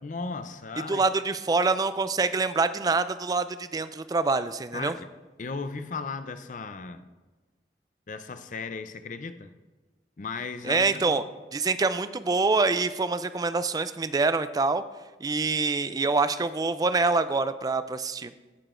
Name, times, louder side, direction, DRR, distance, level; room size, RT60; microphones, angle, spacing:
voice 1, 0.0-1.0 4.7-5.1 5.4-7.0 8.1-9.5 10.2-11.1, left 4 dB, 45° left, 10 dB, 0.5 m, -36 dB
voice 2, 0.9-4.9 10.6-11.2 11.5-14.8 15.2-18.3, right 3 dB, 20° right, 13 dB, 0.3 m, -25 dB
16.5 x 6.7 x 2.5 m, 1.2 s
head